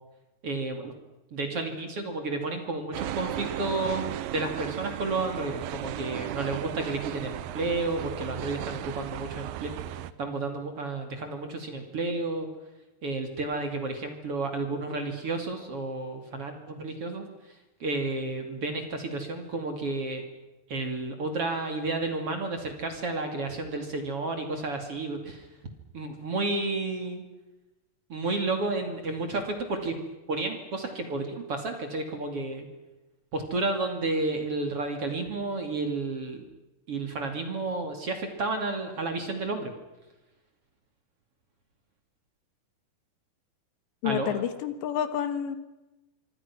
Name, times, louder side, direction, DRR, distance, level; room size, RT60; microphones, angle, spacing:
voice 1, 0.4-0.9 1.3-12.5 13.0-17.3 17.8-20.2 20.7-25.5 25.9-27.2 28.1-30.0 30.3-32.7 33.3-36.4 36.9-39.7 44.0-44.4, right 3 dB, 40° right, 5 dB, 2.9 m, -31 dB
sound 1, 2.9-10.1, right 12 dB, 75° right, 2.3 m, -36 dB
voice 2, 44.0-45.6, left 9 dB, 85° left, 10 dB, 3.9 m, -29 dB
26.0 x 24.5 x 6.1 m, 1.0 s
omnidirectional pair, 4.9 m